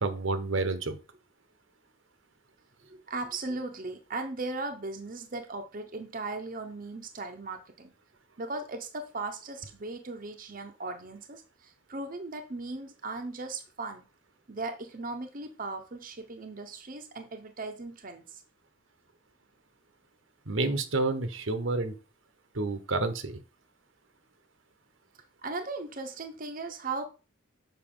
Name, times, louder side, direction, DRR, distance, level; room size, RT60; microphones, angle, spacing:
voice 1, 0.0-1.0 20.5-22.0 22.5-23.4, right 3 dB, 75° right, 1.0 m, -29 dB
voice 2, 2.9-7.9 8.4-14.1 14.5-18.4 25.4-27.0, right 3 dB, 45° right, 0.8 m, -37 dB
6.9 x 5.5 x 3.8 m
head